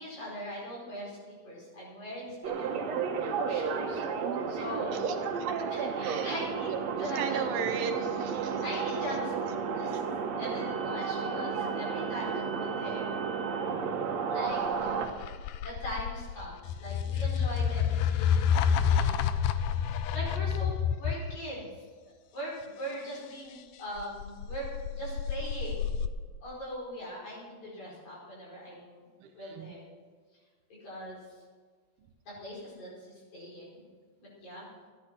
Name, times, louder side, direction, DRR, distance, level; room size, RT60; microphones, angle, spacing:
voice 1, 0.0-3.0 3.5-4.0 4.5-5.2 5.7-7.4 8.6-10.0 10.4-13.2 14.3-15.0 15.6-19.6 20.1-20.7 21.0-21.7 22.0-26.0 26.4-29.1 29.4-29.9 30.7-31.2 32.3-33.8 34.2-34.7, equal, 50° left, -5 dB, 6.1 m, -41 dB
sound 1, 2.4-15.1, right 6 dB, 65° right, 1.9 m, -32 dB
voice 2, 4.9-5.7 6.0-6.3 7.0-9.0 9.8-10.0 29.2-29.7 32.0-32.1, right 7 dB, 85° right, 7 dB, 3.0 m, -38 dB
Creepy Glitchy Noise, 14.7-21.4 24.0-26.1, left 7 dB, 80° left, 1.9 m, -29 dB
14.0 x 10.0 x 6.0 m, 1.5 s
omnidirectional pair, 4.2 m